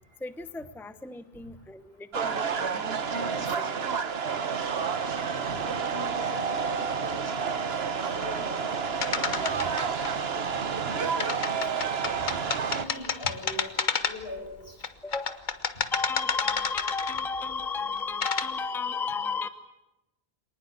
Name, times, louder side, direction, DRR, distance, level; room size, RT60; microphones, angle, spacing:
voice 1, 0.2-4.0 15.0-15.4 15.9-19.5, left 4 dB, ahead, 11 dB, 0.8 m, -34 dB
sound 1, 2.1-12.9, right 6 dB, 75° right, 1.3 m, -30 dB
voice 2, 5.2-7.3 7.6-9.7 10.0-10.3 10.8-11.9 12.6-14.7, left 1 dB, 70° left, 3 dB, 6.1 m, -42 dB
sound 2, 9.0-10.1 11.2-14.4 14.8-17.4 18.0-18.5, left 5 dB, 50° left, 1.2 m, -30 dB
25.5 x 19.5 x 8.0 m, 0.98 s
omnidirectional pair, 1.1 m